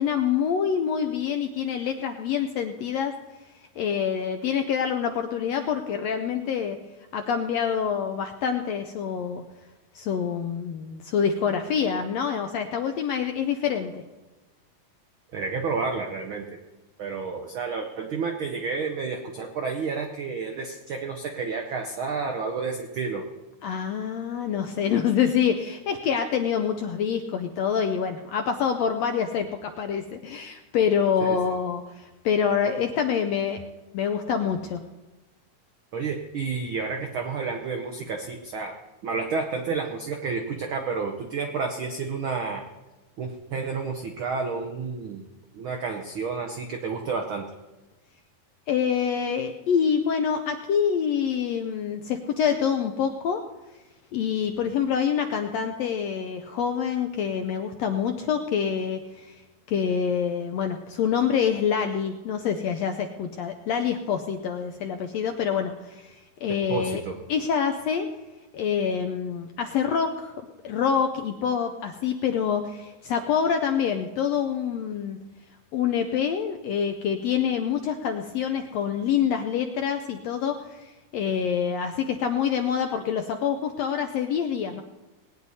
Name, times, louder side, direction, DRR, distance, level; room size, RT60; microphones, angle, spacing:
voice 1, 0.0-3.1 3.8-6.8 7.1-9.4 9.9-14.0 23.6-33.6 33.9-34.8 48.7-53.4 54.1-59.3 59.7-66.1 66.4-67.0 67.3-68.1 68.5-70.3 70.6-75.2 75.7-84.8, left 7 dB, 75° left, 6 dB, 1.5 m, -26 dB
voice 2, 15.3-16.4 17.0-23.2 31.2-31.4 35.9-38.7 39.0-42.6 43.2-45.3 45.5-47.4 66.7-67.2, right 4 dB, 90° right, 3 dB, 1.1 m, -30 dB
20.0 x 9.5 x 4.1 m, 1.1 s
omnidirectional pair, 3.6 m